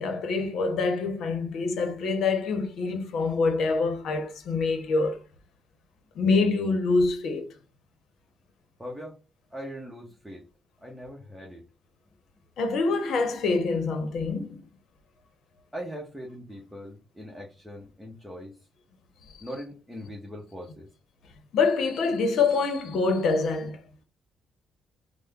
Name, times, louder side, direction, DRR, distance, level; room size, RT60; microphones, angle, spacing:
voice 1, 0.0-5.2 6.1-7.5 12.6-14.6 21.5-23.8, left 4 dB, 70° left, 0.9 m, -25 dB
voice 2, 8.8-9.2 9.5-10.5 10.8-11.6 15.7-18.6 19.4-20.9, equal, ahead, 1.0 m, -40 dB
3.5 x 2.2 x 3.4 m
cardioid pair, 90°, 0 cm